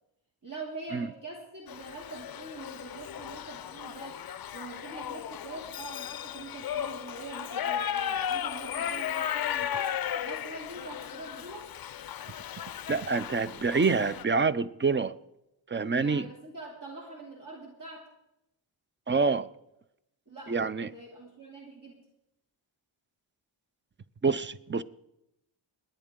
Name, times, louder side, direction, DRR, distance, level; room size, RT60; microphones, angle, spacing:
voice 1, 0.4-4.2 4.5-9.9 10.2-11.7 16.0-18.1 20.3-20.6 20.9-22.0, right 3 dB, 40° right, 2.9 m, -44 dB
Shout / Livestock farm animals working animals, 1.7-14.2, left 9 dB, 50° left, 0.5 m, -35 dB
voice 2, 12.9-15.1 15.7-16.3 19.1-19.5 20.5-20.9 24.2-24.8, right 4 dB, 25° right, 0.4 m, -26 dB
28.0 x 10.0 x 3.7 m
wide cardioid pair, 105°, 48 cm